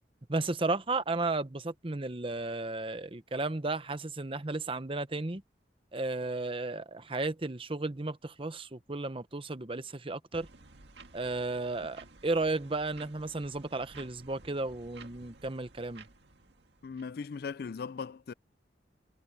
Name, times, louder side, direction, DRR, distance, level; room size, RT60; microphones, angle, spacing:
voice 1, 0.3-5.4 5.9-10.5 11.1-16.0, right 2 dB, 30° right, 0.9 m, -34 dB
sound 1, 10.3-17.1, right 3 dB, 70° right, 1.9 m, -54 dB
voice 2, 16.8-18.3, left 5 dB, 55° left, 0.4 m, -38 dB
head